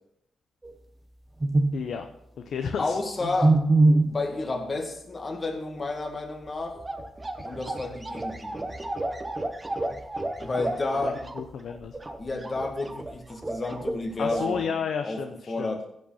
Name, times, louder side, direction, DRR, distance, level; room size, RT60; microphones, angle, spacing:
sound 1, 0.6-0.7 1.4-1.9 3.4-4.2 6.4-6.5 6.8-14.0 14.2-14.7, right 2 dB, 20° right, 1.0 m, -27 dB
voice 1, 1.7-2.1 2.5-3.3 10.4-10.5 10.9-12.0 14.2-15.8, left 6 dB, 75° left, 5 dB, 0.8 m, -32 dB
voice 2, 2.8-3.6 4.0-6.8 7.4-8.6 10.4-11.2 12.2-14.7 15.0-15.2 15.5-15.8, left 3 dB, 35° left, 2 dB, 2.0 m, -31 dB
15.5 x 5.4 x 5.7 m, 0.76 s
cardioid pair, 120°, 0 cm